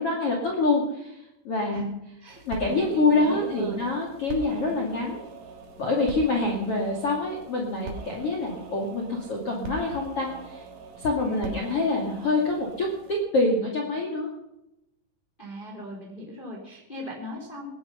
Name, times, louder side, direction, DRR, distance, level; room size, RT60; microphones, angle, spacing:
voice 1, 0.0-1.8 2.5-5.2 5.8-10.6 11.0-14.3, left 2 dB, 40° left, 0 dB, 2.6 m, -26 dB
voice 2, 2.2-3.8 11.2-11.4 15.4-17.8, left 1 dB, 10° left, -1 dB, 3.3 m, -39 dB
sound 1, 2.3-13.2, right 3 dB, 85° right, 6.0 m, -42 dB
20.5 x 11.0 x 5.7 m, 0.86 s
omnidirectional pair, 5.4 m